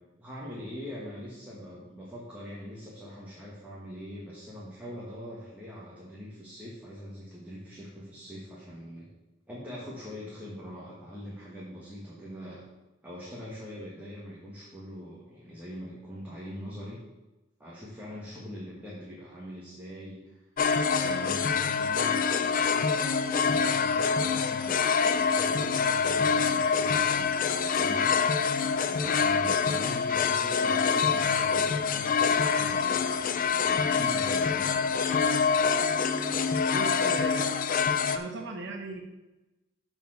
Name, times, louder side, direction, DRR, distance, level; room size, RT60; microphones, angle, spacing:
voice 1, 0.2-9.1 9.5-12.6 13.0-17.0 17.6-20.4 20.8-24.8 25.1-28.2 28.8-34.8, equal, 10° right, -7 dB, 1.6 m, -43 dB
sound 1, 20.6-38.2, left 6 dB, 45° left, 0.4 m, -26 dB
voice 2, 35.8-39.0, right 2 dB, 65° right, 2 dB, 1.0 m, -40 dB
6.9 x 4.5 x 6.4 m, 1.0 s
head